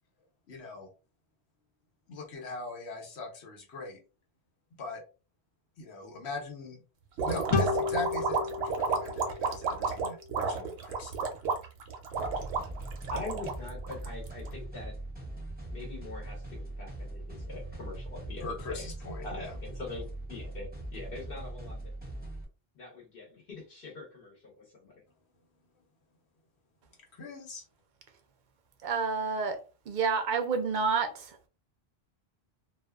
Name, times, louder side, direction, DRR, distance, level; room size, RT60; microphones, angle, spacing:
voice 1, 0.5-0.9 2.1-4.0 4.8-5.0 5.8-6.8 7.2-11.1 18.4-19.5 27.1-27.6, left 3 dB, 90° left, 1.1 m, -40 dB
sound 1, 7.2-14.5, right 4 dB, 85° right, 0.9 m, -32 dB
sound 2, 7.5-10.9, left 4 dB, 45° left, 0.4 m, -33 dB
sound 3, 12.2-22.4, right 1 dB, 10° right, 0.5 m, -41 dB
voice 2, 13.1-15.0 15.7-18.8 19.2-21.9 22.7-25.0, left 3 dB, 65° left, 1.0 m, -43 dB
voice 3, 28.8-29.6 29.9-31.5, right 5 dB, 55° right, 0.6 m, -29 dB
2.5 x 2.2 x 2.2 m
omnidirectional pair, 1.1 m